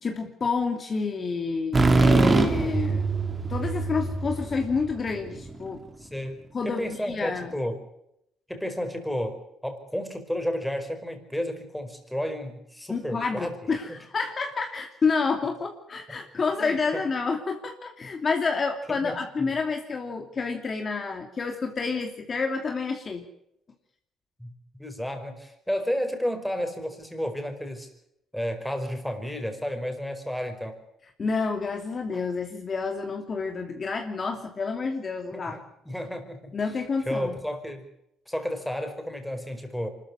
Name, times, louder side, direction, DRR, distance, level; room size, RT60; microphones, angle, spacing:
voice 1, 0.0-3.0 3.5-5.8 6.5-7.5 12.9-23.2 31.2-35.6 36.5-37.3, left 4 dB, 35° left, 4 dB, 2.8 m, -29 dB
sound 1, 1.7-5.5, right 3 dB, 25° right, 2.8 m, -23 dB
voice 2, 6.0-7.8 8.5-13.6 13.9-14.0 16.6-17.0 19.0-19.5 24.4-24.5 24.8-27.9 28.3-30.8 35.3-36.5 37.1-37.8 38.3-39.9, equal, ahead, 6 dB, 5.0 m, -32 dB
24.5 x 14.0 x 9.6 m, 0.77 s
cardioid pair, 90°, 0 cm